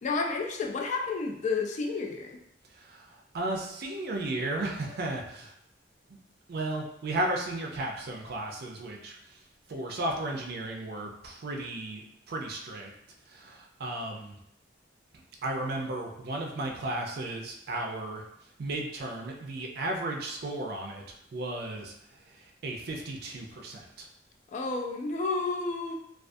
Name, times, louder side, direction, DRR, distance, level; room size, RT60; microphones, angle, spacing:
voice 1, 0.0-2.4 24.5-25.9, left 4 dB, 40° left, 2 dB, 0.3 m, -31 dB
voice 2, 2.7-5.5 6.5-9.4 9.7-12.9 13.3-14.4 15.1-18.2 18.6-21.0 21.3-24.1, right 2 dB, 60° right, 1 dB, 0.4 m, -35 dB
2.3 x 2.3 x 2.5 m, 0.76 s
head